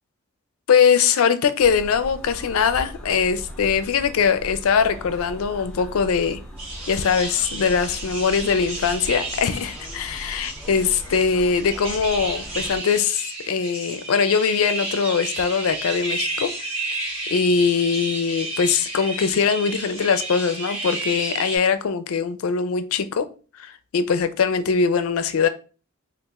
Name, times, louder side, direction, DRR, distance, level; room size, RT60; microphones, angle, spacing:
voice 1, 0.7-6.4 6.9-16.5 16.9-17.0 17.3-23.3 23.5-25.5, left 6 dB, 70° left, 0.4 m, -21 dB
sound 1, 1.6-12.8, equal, 5° left, 0.5 m, -39 dB
sound 2, 6.6-21.6, right 2 dB, 25° right, 1.3 m, -32 dB
3.0 x 2.4 x 3.5 m
head